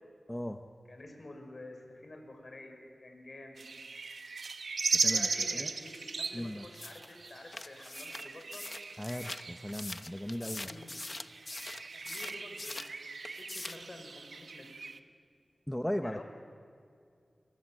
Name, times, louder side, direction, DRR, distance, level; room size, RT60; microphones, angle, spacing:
voice 1, 0.3-0.7 4.8-5.7 6.3-6.6 9.0-10.7 15.7-16.2, equal, 10° left, 6 dB, 1.0 m, -37 dB
voice 2, 0.9-3.6 5.0-8.6 10.4-11.0 11.5-14.8 16.0-16.2, left 2 dB, 50° left, 4 dB, 5.7 m, -50 dB
sound 1, 3.6-15.0, right 4 dB, 80° right, 1.1 m, -37 dB
sound 2, 6.7-13.0 13.2-13.9, left 2 dB, 35° left, 0.9 m, -43 dB
30.0 x 23.0 x 7.7 m, 2.3 s
wide cardioid pair, 70°, 0 cm